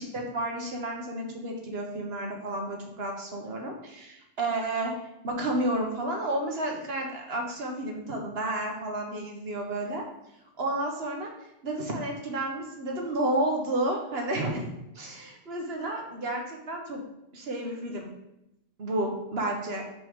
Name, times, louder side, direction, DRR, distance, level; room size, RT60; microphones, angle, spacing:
voice 1, 0.0-4.9 5.2-10.0 10.6-11.3 11.6-17.0 17.3-18.1 18.8-19.8, right 1 dB, 55° right, 1 dB, 1.3 m, -31 dB
5.8 x 5.3 x 3.6 m, 0.87 s
omnidirectional pair, 1.3 m